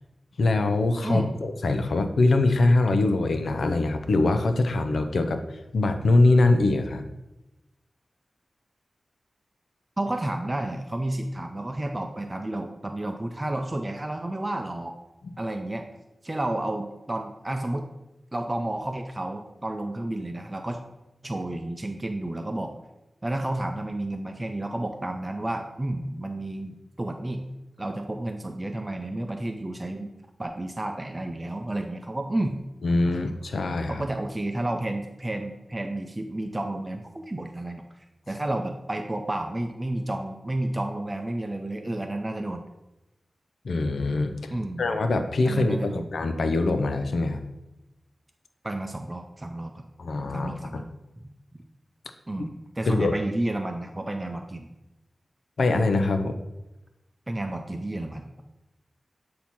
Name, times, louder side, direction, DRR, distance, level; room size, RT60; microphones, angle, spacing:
voice 1, 0.4-7.1 32.8-34.0 43.6-47.5 50.0-50.8 52.8-53.1 55.6-56.3, left 2 dB, 85° left, 7 dB, 0.5 m, -23 dB
voice 2, 1.0-1.4 10.0-14.9 15.4-15.9 16.2-17.9 18.3-20.8 21.2-22.7 23.2-27.5 27.8-30.1 30.4-32.6 33.9-42.6 44.5-45.0 45.4-46.1 48.6-49.9 50.3-50.9 51.2-51.3 52.3-54.7 57.3-58.3, right 1 dB, 25° right, 5 dB, 0.5 m, -31 dB
8.5 x 2.8 x 5.9 m, 0.97 s
wide cardioid pair, 90°, 0 cm